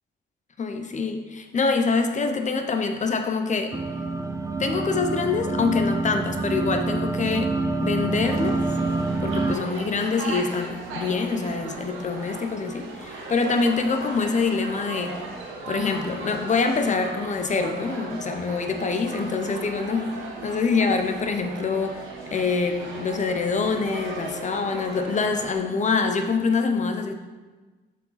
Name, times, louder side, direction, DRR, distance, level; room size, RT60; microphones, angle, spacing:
voice 1, 0.6-3.8 4.6-7.5 7.8-8.7 9.2-15.2 15.7-22.1 22.3-27.1, left 4 dB, 35° left, 6 dB, 0.8 m, -25 dB
sound 1, 3.7-9.6, right 3 dB, 15° right, 0.4 m, -27 dB
sound 2, 8.1-25.5, right 3 dB, 85° right, 1.2 m, -37 dB
7.1 x 4.7 x 4.1 m, 1.3 s
cardioid pair, 90°, 20 cm